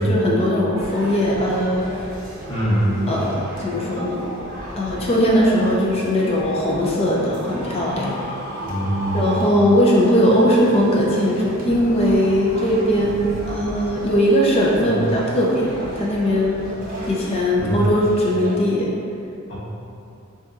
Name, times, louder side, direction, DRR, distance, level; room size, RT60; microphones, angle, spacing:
voice 1, 0.0-2.1 3.1-4.2 4.8-8.2 9.1-16.6 17.1-18.9, equal, 30° left, -5 dB, 0.5 m, -19 dB
sound 1, 0.7-18.6, right 1 dB, 40° right, 0.7 m, -35 dB
voice 2, 2.5-3.1 8.7-9.4 14.8-14.9 17.6-17.8 19.5-19.6, equal, 65° left, -10 dB, 1.2 m, -23 dB
Screaming, 7.4-10.1, right 1 dB, 15° right, 1.0 m, -33 dB
5.1 x 2.7 x 2.3 m, 2.6 s
head